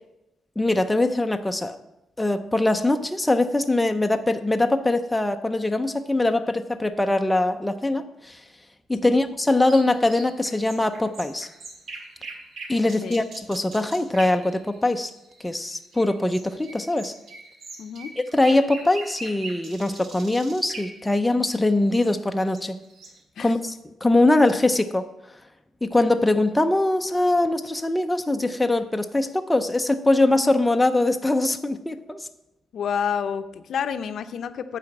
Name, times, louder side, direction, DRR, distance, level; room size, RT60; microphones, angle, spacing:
voice 1, 0.6-1.8 2.2-8.4 8.9-11.5 12.7-15.1 15.4-17.1 18.2-22.8 23.4-23.8 24.0-25.1 25.8-32.3, left 2 dB, 5° left, 6 dB, 0.4 m, -22 dB
sound 1, 9.7-23.2, right 3 dB, 60° right, 1.8 m, -42 dB
voice 2, 17.8-18.1 23.4-23.5 32.7-34.8, left 7 dB, 55° left, 10 dB, 0.6 m, -29 dB
9.2 x 4.9 x 7.7 m, 0.93 s
cardioid pair, 160°, 0 cm